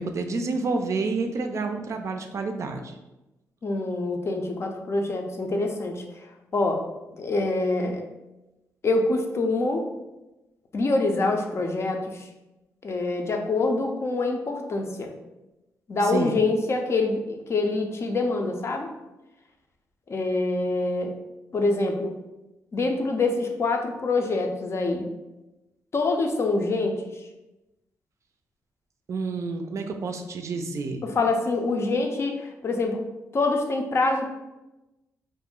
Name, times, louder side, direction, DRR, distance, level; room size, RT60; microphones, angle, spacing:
voice 1, 0.0-2.9 16.1-16.3 29.1-31.0, right 3 dB, 55° right, 5 dB, 0.4 m, -29 dB
voice 2, 3.6-6.3 6.5-6.8 7.1-8.0 8.8-9.9 10.7-12.3 12.8-15.1 15.9-18.9 20.1-21.1 21.5-22.2 22.7-25.1 25.9-27.0 31.0-33.0 33.3-34.3, left 3 dB, 45° left, 3 dB, 0.5 m, -25 dB
2.5 x 2.0 x 3.6 m, 1.0 s
cardioid pair, 65°, 6 cm